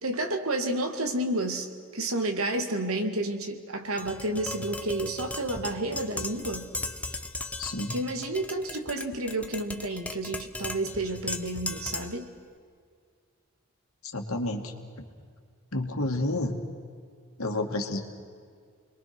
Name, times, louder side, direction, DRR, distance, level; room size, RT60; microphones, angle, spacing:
voice 1, 0.0-6.7 7.9-12.3, right 1 dB, 80° right, 5 dB, 2.4 m, -30 dB
Tap, 4.0-12.3, left 2 dB, 5° left, 0.8 m, -37 dB
voice 2, 7.6-8.0 14.1-14.7 15.7-16.5 17.4-18.0, left 2 dB, 80° left, 3 dB, 2.4 m, -30 dB
29.0 x 22.0 x 6.2 m, 2.2 s
head